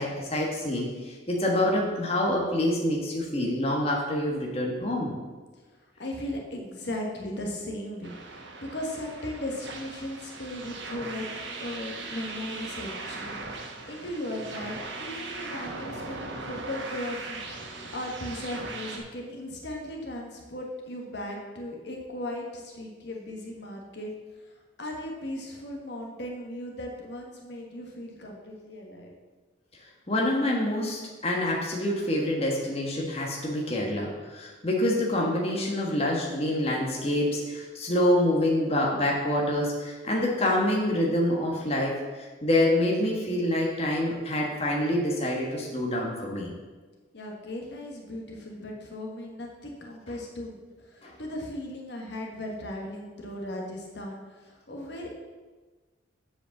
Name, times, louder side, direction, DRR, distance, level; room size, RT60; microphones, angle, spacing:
voice 1, 0.0-5.1 30.1-46.5 51.0-51.1, left 1 dB, 30° left, -2 dB, 1.4 m, -26 dB
voice 2, 6.0-11.3 11.6-24.1 24.8-29.1 47.1-55.1, left 1 dB, 60° left, 0 dB, 1.4 m, -37 dB
sound 1, 8.0-19.0, right 3 dB, 65° right, 1.3 m, -39 dB
7.6 x 5.1 x 7.1 m, 1.3 s
head